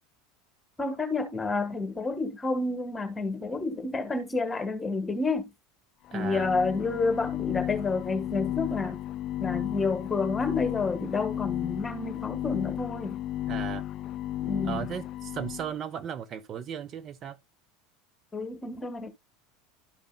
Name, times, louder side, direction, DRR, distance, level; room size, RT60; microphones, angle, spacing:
voice 1, 0.8-5.5 6.1-9.0 9.4-13.2 14.4-14.8 18.3-19.1, left 3 dB, 20° left, 1.6 m, -29 dB
sound 1, 6.1-15.7, left 13 dB, 45° left, 0.4 m, -33 dB
voice 2, 6.1-6.5 13.5-13.8 14.6-17.4, right 8 dB, 40° right, 0.9 m, -36 dB
13.0 x 5.2 x 2.2 m
hypercardioid pair, 85°, 0 cm